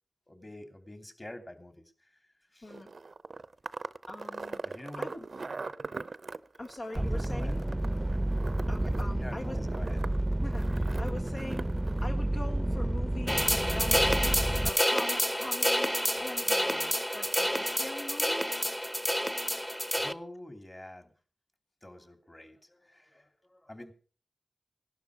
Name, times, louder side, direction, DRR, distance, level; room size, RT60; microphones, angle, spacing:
voice 1, 0.3-2.1 2.5-2.8 4.6-5.1 6.9-7.6 9.2-10.0 19.9-21.1 21.8-23.9, left 1 dB, 30° left, 7 dB, 2.8 m, -47 dB
voice 2, 2.6-2.9 4.1-4.6 5.0-5.3 6.6-7.6 8.7-9.6 10.4-13.5 13.7-18.7, left 2 dB, 65° left, 2 dB, 1.6 m, -42 dB
sound 1, 2.7-12.1, right 4 dB, 70° right, 0.6 m, -41 dB
sound 2, 7.0-14.7, right 1 dB, 20° right, 0.7 m, -30 dB
sound 3, 13.3-20.1, equal, 10° left, 1.0 m, -29 dB
17.5 x 12.0 x 4.8 m, 0.39 s
cardioid pair, 45°, 0 cm